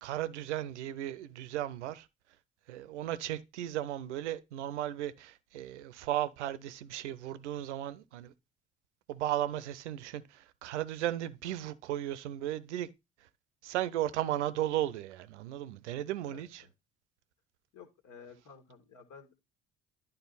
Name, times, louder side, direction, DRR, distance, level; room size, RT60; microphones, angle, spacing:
voice 1, 0.0-2.1 2.7-8.3 9.1-12.9 13.2-13.3 13.6-16.6, right 13 dB, 85° right, 0.6 m, -35 dB
voice 2, 16.3-16.7 17.7-19.3, left 5 dB, 60° left, 1.9 m, -53 dB
11.0 x 3.8 x 4.1 m
hypercardioid pair, 50°, 34 cm